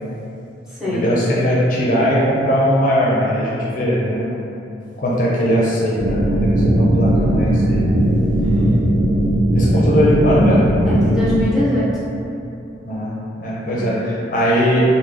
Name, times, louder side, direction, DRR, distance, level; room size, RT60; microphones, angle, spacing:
voice 1, 0.9-4.2 5.0-6.2 6.8-7.8 9.5-10.6 12.9-13.1 13.4-14.8, equal, 45° left, -6 dB, 0.5 m, -19 dB
sound 1, 6.0-11.4, right 1 dB, 70° right, 0.5 m, -17 dB
voice 2, 8.4-9.0 10.9-11.9 13.7-13.9, left 1 dB, 5° right, -10 dB, 0.8 m, -23 dB
3.1 x 2.1 x 3.7 m, 2.7 s
head